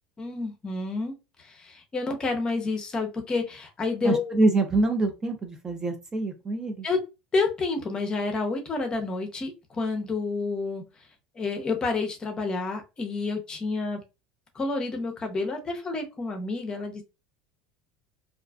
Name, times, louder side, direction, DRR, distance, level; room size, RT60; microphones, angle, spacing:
voice 1, 0.2-4.4 6.8-7.0 7.3-10.8 11.4-14.0 14.5-17.0, left 3 dB, 25° left, 4 dB, 0.6 m, -29 dB
voice 2, 4.0-6.9, right 2 dB, 20° right, 5 dB, 0.4 m, -25 dB
2.4 x 2.3 x 2.3 m, 0.27 s
supercardioid pair, 115°, 3 cm